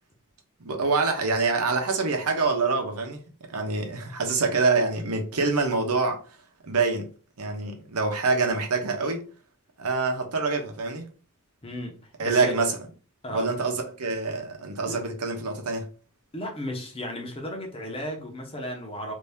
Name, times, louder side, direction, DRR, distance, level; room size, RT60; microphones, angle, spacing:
voice 1, 0.6-3.2 3.5-6.2 6.6-7.1 7.4-9.2 9.8-11.0 12.2-12.7 13.3-15.9, right 4 dB, 80° right, 0.8 m, -25 dB
voice 2, 11.6-12.5 13.2-13.5 14.9-15.1 16.3-19.1, left 1 dB, 25° left, 0.8 m, -35 dB
2.7 x 2.7 x 3.4 m
head